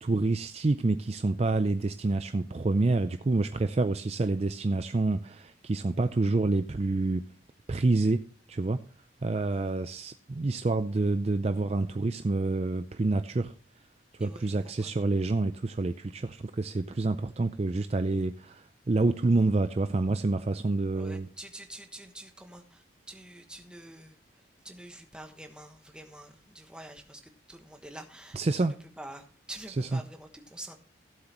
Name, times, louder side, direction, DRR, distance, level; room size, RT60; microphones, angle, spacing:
voice 1, 0.0-7.3 7.7-8.2 8.5-8.8 9.2-13.5 14.2-21.3 28.3-28.7 29.8-30.0, right 3 dB, 35° right, 0.4 m, -27 dB
voice 2, 14.2-14.9 20.9-30.8, right 1 dB, 5° right, 1.2 m, -47 dB
16.5 x 7.8 x 3.0 m
head